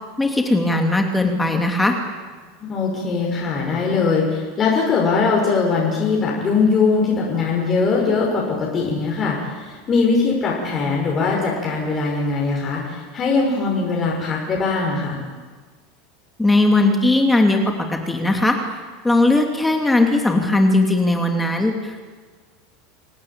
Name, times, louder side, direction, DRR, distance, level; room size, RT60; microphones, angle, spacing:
voice 1, 0.2-1.9 16.4-17.6 17.9-18.6 19.0-22.1, left 2 dB, 10° left, 3 dB, 2.9 m, -18 dB
voice 2, 2.6-15.2, left 4 dB, 35° left, -2 dB, 6.2 m, -21 dB
27.5 x 17.5 x 8.9 m, 1.5 s
hypercardioid pair, 80°, 0 cm